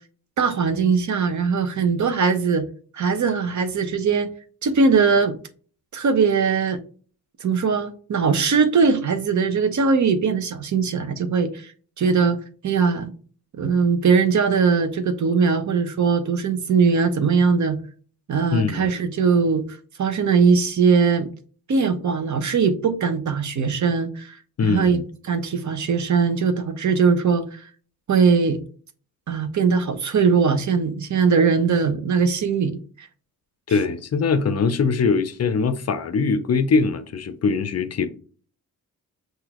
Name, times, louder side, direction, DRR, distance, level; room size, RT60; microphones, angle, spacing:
voice 1, 0.4-2.6 2.9-4.3 4.6-5.4 5.9-6.8 7.4-11.7 12.0-12.4 12.6-13.1 13.6-17.8 18.3-19.6 20.0-21.3 21.7-24.4 24.6-27.6 28.1-28.6 29.3-33.1, right 5 dB, 55° right, 0.8 m, -20 dB
voice 2, 18.5-18.9 24.6-25.0 33.7-38.1, left 5 dB, 45° left, 0.6 m, -22 dB
6.0 x 2.7 x 2.9 m
cardioid pair, 115°, 35 cm